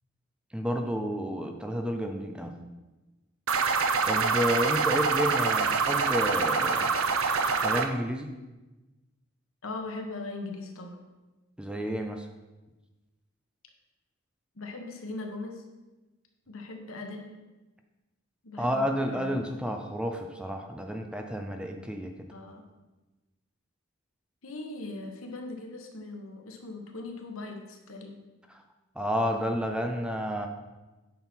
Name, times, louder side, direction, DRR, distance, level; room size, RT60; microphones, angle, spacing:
voice 1, 0.5-2.6 4.1-6.9 7.6-8.3 11.6-12.3 18.6-22.1 29.0-30.5, equal, 5° right, 4 dB, 0.5 m, -30 dB
sound 1, 3.5-7.9, right 5 dB, 90° right, 0.7 m, -25 dB
voice 2, 9.6-11.0 14.5-15.6 16.5-17.3 18.4-19.7 22.3-22.6 24.4-28.1, left 2 dB, 85° left, 3 dB, 1.3 m, -40 dB
9.1 x 5.9 x 4.4 m, 1.1 s
head